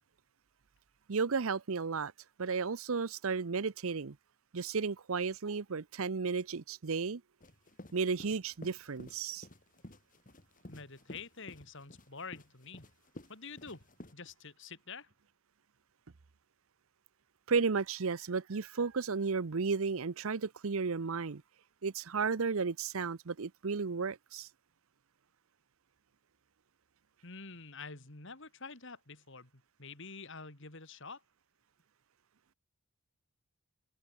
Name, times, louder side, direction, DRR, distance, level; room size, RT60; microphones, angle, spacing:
voice 1, 1.1-2.1 2.4-4.2 4.5-7.2 7.9-9.5 17.5-21.4 21.8-24.5, right 5 dB, 65° right, 0.7 m, -33 dB
sound 1, 7.4-14.1, left 1 dB, 35° left, 2.6 m, -52 dB
voice 2, 10.7-12.8 13.3-13.8 14.1-15.1 27.2-31.2, left 4 dB, 55° left, 3.3 m, -47 dB
head